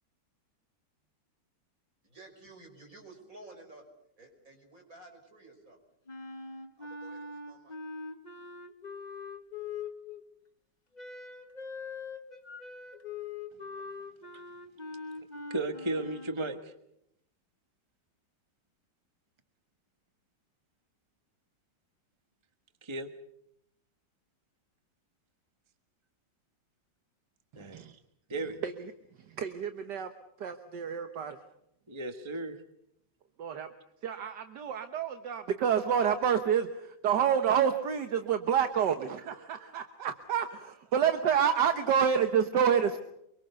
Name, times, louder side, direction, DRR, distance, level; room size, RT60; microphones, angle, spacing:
voice 1, 2.0-3.8 4.2-5.8 6.8-7.8, right 2 dB, 45° right, 5.9 m, -53 dB
Wind instrument woodwind instrument, 6.1-10.2 10.9-16.4, left 4 dB, 25° left, 1.6 m, -42 dB
voice 2, 15.5-16.7 22.8-23.1 27.6-28.0 28.3-28.6 31.9-32.6, right 2 dB, 15° right, 1.2 m, -35 dB
voice 3, 27.5-27.9 28.6-28.9 29.4-30.1 30.4-31.4 33.4-33.7 34.0-43.0, right 8 dB, 70° right, 1.7 m, -28 dB
25.0 x 23.5 x 6.9 m
omnidirectional pair, 2.0 m